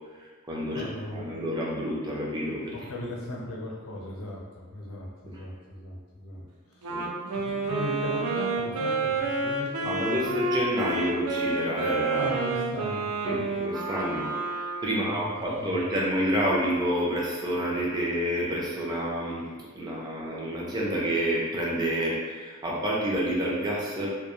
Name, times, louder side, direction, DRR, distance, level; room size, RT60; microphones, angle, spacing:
voice 1, 0.2-2.7 6.9-7.1 9.8-12.3 13.2-19.4 19.7-24.1, equal, 20° right, -4 dB, 0.4 m, -29 dB
voice 2, 0.7-1.3 2.7-10.4 12.1-13.4 14.9-15.8, left 1 dB, 80° left, -3 dB, 0.6 m, -38 dB
Wind instrument woodwind instrument, 6.8-15.1, right 3 dB, 85° right, 0.4 m, -29 dB
2.2 x 2.2 x 3.0 m, 1.4 s
head